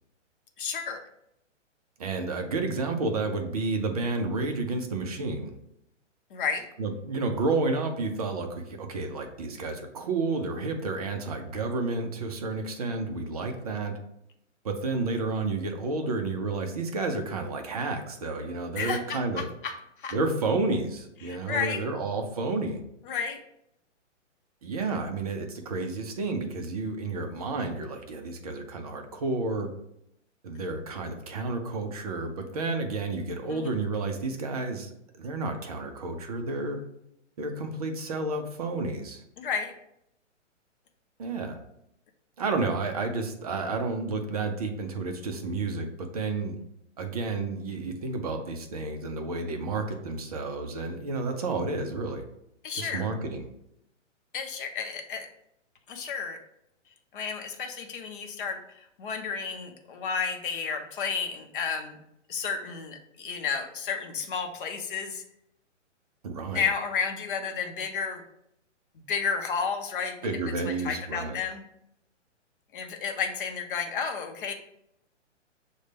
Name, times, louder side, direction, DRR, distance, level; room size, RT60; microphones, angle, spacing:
voice 1, 0.6-1.0 6.3-6.7 18.8-20.1 21.2-21.8 23.0-23.4 33.5-33.7 39.4-39.7 52.6-53.1 54.3-55.3 55.9-56.4 57.1-62.0 62.3-65.2 66.5-68.2 69.1-70.2 70.6-71.6 72.7-74.5, left 6 dB, 45° left, 4 dB, 0.7 m, -32 dB
voice 2, 2.0-5.5 6.8-13.9 14.6-19.5 20.1-22.8 24.6-29.7 30.4-34.9 35.2-36.8 37.4-39.2 41.2-41.6 42.4-46.6 47.0-52.3 52.7-53.4 66.2-66.6 70.2-71.4, right 3 dB, 30° right, 4 dB, 0.4 m, -31 dB
6.2 x 2.2 x 3.3 m, 0.79 s
hypercardioid pair, 150°, 37 cm